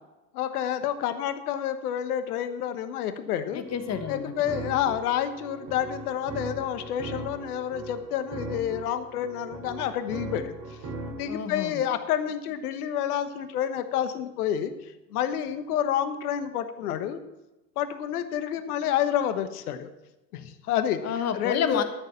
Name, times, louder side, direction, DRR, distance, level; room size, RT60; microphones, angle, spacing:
voice 1, 0.3-3.6 4.1-10.6 11.2-14.7 15.1-17.2 17.8-19.9 20.3-21.0 21.3-21.8, left 10 dB, 65° left, 11 dB, 1.3 m, -29 dB
voice 2, 3.5-4.3 11.3-11.8 21.0-21.8, left 7 dB, 35° left, 9 dB, 1.4 m, -29 dB
sound 1, 3.6-11.3, right 2 dB, 50° right, 4.9 m, -39 dB
13.0 x 6.7 x 7.3 m, 1.0 s
hypercardioid pair, 90°, 48 cm